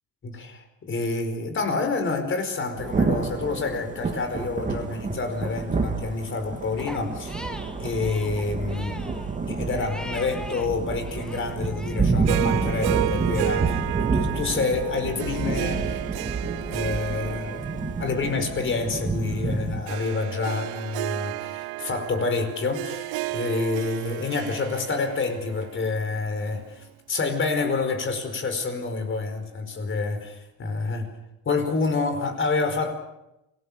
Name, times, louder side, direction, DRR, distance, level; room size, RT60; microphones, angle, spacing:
voice 1, 0.2-7.5 7.8-9.0 9.5-16.0 16.7-31.1 31.4-32.9, left 4 dB, 30° left, 7 dB, 4.8 m, -28 dB
Thunder / Rain, 2.8-19.8, right 4 dB, 20° right, 2.8 m, -29 dB
Crying sobbing, 6.8-10.7 11.0-12.1, equal, ahead, 1.6 m, -41 dB
Harp, 12.3-26.6, right 19 dB, 80° right, 0.7 m, -33 dB
27.5 x 18.5 x 6.8 m, 0.88 s
cardioid pair, 140°, 37 cm